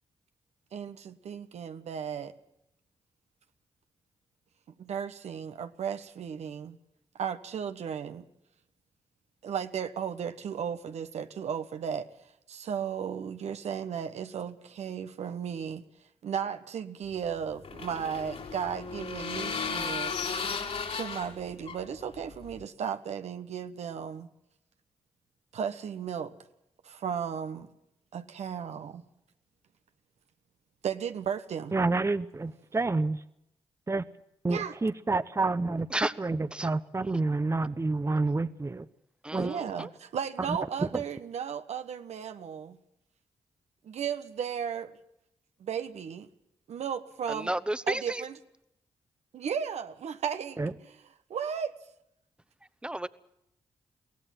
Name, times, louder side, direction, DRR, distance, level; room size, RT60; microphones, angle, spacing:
voice 1, 0.7-2.3 4.8-6.8 7.1-8.2 9.4-12.1 12.5-15.8 16.2-20.5 20.9-24.3 25.5-26.3 26.8-27.7 28.1-29.0 30.8-31.8 34.5-34.7 39.3-42.8 43.8-44.9 45.6-46.3 46.7-47.5 47.9-48.4 49.3-50.6 51.3-51.7, right 7 dB, 75° right, 1.2 m, -35 dB
sound 1, 17.1-22.6, left 5 dB, 65° left, 4.3 m, -35 dB
voice 2, 31.7-33.2 33.9-34.0 34.4-35.9 36.2-38.9 39.3-39.5 40.5-40.6 40.9-41.0 50.6-50.7, right 3 dB, 25° right, 0.9 m, -28 dB
voice 3, 39.2-39.9 47.3-48.2 52.8-53.1, right 1 dB, 10° right, 1.1 m, -32 dB
23.0 x 17.0 x 7.6 m
supercardioid pair, 50°, 11 cm